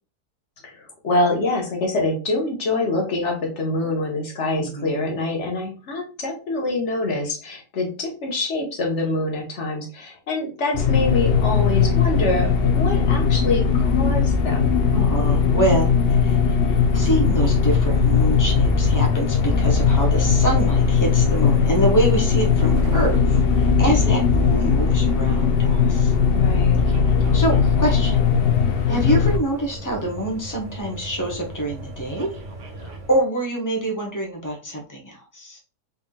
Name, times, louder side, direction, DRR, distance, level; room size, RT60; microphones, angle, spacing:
voice 1, 0.6-14.8 23.8-24.1 26.3-26.8 28.9-29.2, left 2 dB, 50° left, 1 dB, 1.3 m, -25 dB
voice 2, 4.6-5.0 14.9-26.1 27.3-28.2 28.9-32.3 32.7-35.6, right 1 dB, 15° left, 0 dB, 0.8 m, -26 dB
sound 1, 10.7-29.4, left 5 dB, 85° left, 0.5 m, -19 dB
sound 2, 16.7-33.2, equal, 55° right, 1.1 m, -36 dB
4.1 x 3.4 x 2.3 m, 0.34 s
omnidirectional pair, 1.6 m